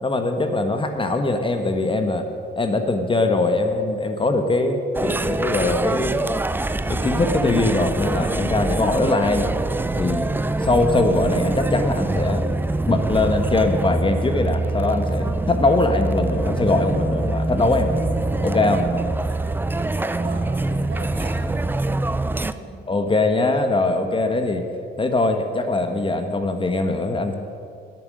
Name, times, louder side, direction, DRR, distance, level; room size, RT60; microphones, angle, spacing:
voice 1, 0.0-2.3 2.6-6.2 6.9-9.5 10.0-10.3 10.6-12.5 12.9-17.9 18.4-18.8 22.9-24.6 25.0-27.3, left 2 dB, 25° left, 6 dB, 1.3 m, -21 dB
sound 1, 4.9-22.5, right 2 dB, 10° right, 0.5 m, -24 dB
voice 2, 18.8-21.6 22.2-22.8, right 3 dB, 60° right, 1 dB, 2.8 m, -40 dB
10.0 x 7.6 x 9.4 m, 2.3 s
supercardioid pair, 75°, 20 cm